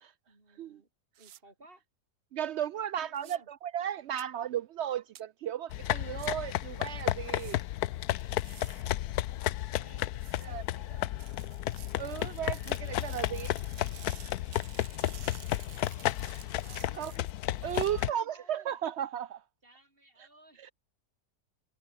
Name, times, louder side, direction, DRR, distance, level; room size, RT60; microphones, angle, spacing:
voice 1, 0.3-0.9 1.2-1.8 3.0-3.5 9.7-11.3 16.6-17.0 17.6-18.8 19.6-20.7, right 1 dB, 35° right, 3.9 m, -58 dB
sound 1, 1.2-1.4 3.1-3.4 4.2-4.3 5.2-5.3 6.2-6.3 7.2-7.6 8.2-8.8 10.2-10.5 11.2-17.9, right 11 dB, 70° right, 1.3 m, -52 dB
voice 2, 2.3-3.4 3.7-7.6 10.5-10.6 12.0-13.5 17.0-17.1 17.6-19.4 20.6-20.7, right 10 dB, 90° right, 0.5 m, -35 dB
sound 2, 5.7-18.1, left 14 dB, 75° left, 1.1 m, -33 dB
omnidirectional pair, 1.7 m